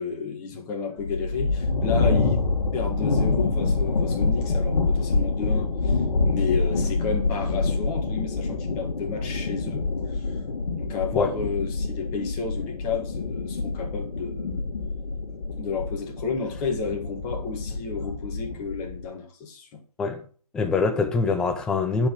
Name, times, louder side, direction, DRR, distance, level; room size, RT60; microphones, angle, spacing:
voice 1, 0.0-2.4 2.7-10.4 10.7-14.6 15.6-19.8, left 5 dB, 20° left, 1.7 m, -32 dB
sound 1, 1.0-19.0, left 3 dB, 60° left, 1.9 m, -26 dB
voice 2, 20.5-22.1, left 4 dB, 5° left, 0.4 m, -24 dB
10.0 x 5.2 x 6.2 m
figure-of-eight pair, 145°, 20 cm